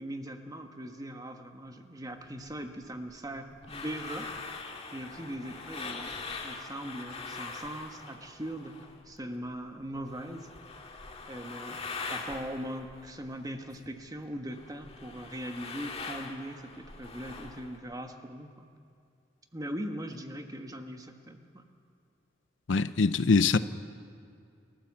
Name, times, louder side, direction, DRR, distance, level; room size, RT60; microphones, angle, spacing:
voice 1, 0.0-4.3 4.9-6.1 6.4-8.8 9.1-10.5 11.3-11.8 12.1-18.7 19.5-21.6, right 1 dB, 20° right, 1.3 m, -40 dB
sound 1, 2.5-9.2 9.4-14.0 14.3-17.8, left 4 dB, 30° left, 1.8 m, -42 dB
voice 2, 22.7-23.6, left 4 dB, 70° left, 0.6 m, -23 dB
29.0 x 13.0 x 7.5 m
head